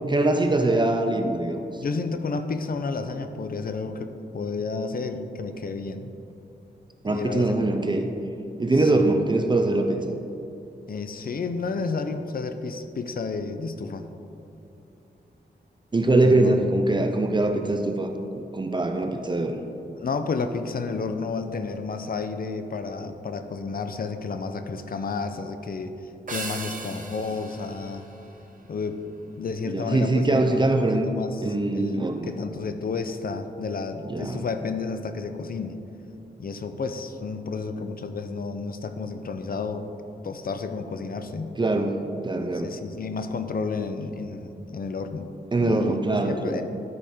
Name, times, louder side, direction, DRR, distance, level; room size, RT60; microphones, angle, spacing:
voice 1, 0.1-1.6 7.0-8.1 8.6-10.0 15.9-19.6 29.7-31.1 31.4-32.3 34.1-34.4 41.6-42.7 45.5-46.6, right 2 dB, 25° right, 5 dB, 0.5 m, -23 dB
voice 2, 1.8-6.1 7.0-7.7 8.8-9.1 10.9-14.0 16.2-16.7 19.9-28.1 28.7-29.0 29.4-35.8 36.4-39.8 40.2-41.5 42.4-45.3 45.6-46.6, left 4 dB, 55° left, 8 dB, 0.6 m, -31 dB
sound 1, 26.3-28.9, right 3 dB, 50° right, 0.9 m, -38 dB
12.5 x 4.4 x 5.0 m, 2.8 s
wide cardioid pair, 120°, 18 cm